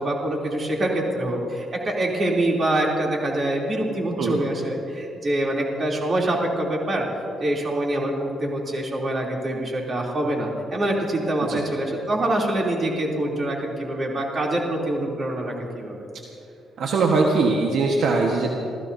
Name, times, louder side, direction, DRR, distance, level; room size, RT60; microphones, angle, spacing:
voice 1, 0.0-7.1 7.4-16.0, right 1 dB, 40° right, -2 dB, 3.2 m, -25 dB
voice 2, 16.8-18.5, right 3 dB, 70° right, 0 dB, 1.4 m, -21 dB
27.5 x 15.0 x 2.8 m, 2.6 s
cardioid pair, 90°, 0 cm